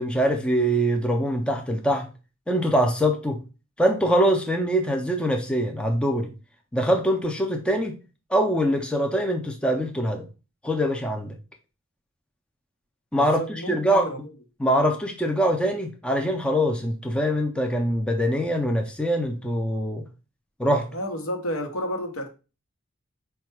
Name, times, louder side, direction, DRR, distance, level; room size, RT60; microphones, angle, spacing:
voice 1, 0.0-2.1 2.5-3.4 3.8-6.3 6.7-8.0 8.3-10.3 10.6-11.4 13.1-14.1 14.6-20.0 20.6-20.9, equal, 5° left, 0.4 m, -23 dB
voice 2, 13.1-14.3 20.9-22.3, equal, 85° left, 0.9 m, -31 dB
4.4 x 2.3 x 4.4 m
head